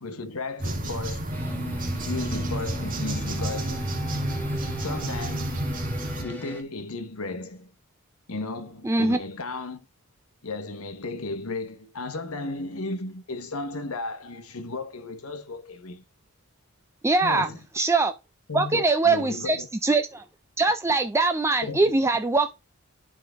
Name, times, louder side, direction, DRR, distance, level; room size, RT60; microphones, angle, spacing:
voice 1, 0.0-1.4 2.0-3.9 4.8-5.8 6.2-7.7 8.3-9.8 10.4-16.0 17.2-17.6 18.5-19.7 21.6-21.8, left 3 dB, 75° left, 1.2 m, -34 dB
sound 1, 0.6-6.2, right 1 dB, 40° right, 2.2 m, -30 dB
sound 2, 1.3-6.6, right 1 dB, 10° left, 1.4 m, -38 dB
voice 2, 8.8-9.2 17.0-17.5 17.7-18.1 18.5-20.2 20.6-22.6, right 3 dB, 10° right, 0.4 m, -22 dB
11.5 x 3.9 x 3.6 m
head